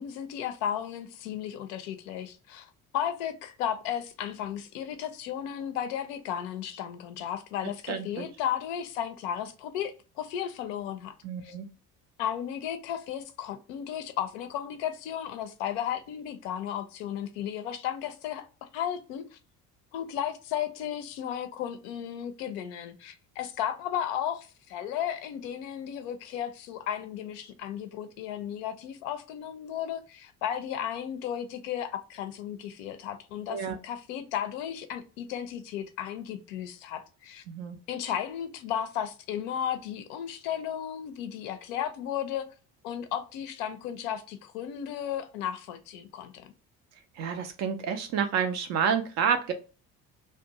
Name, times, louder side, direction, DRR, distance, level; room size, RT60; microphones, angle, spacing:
voice 1, 0.0-11.1 11.4-11.6 12.2-18.5 18.7-19.4 19.9-37.4 37.9-42.4 42.8-46.5, left 9 dB, 55° left, 0.5 m, -34 dB
voice 2, 7.9-8.3 11.2-11.7 33.5-33.8 37.5-37.8 47.2-49.5, right 7 dB, 35° right, 0.4 m, -29 dB
2.6 x 2.2 x 2.8 m
figure-of-eight pair, 55°, 48 cm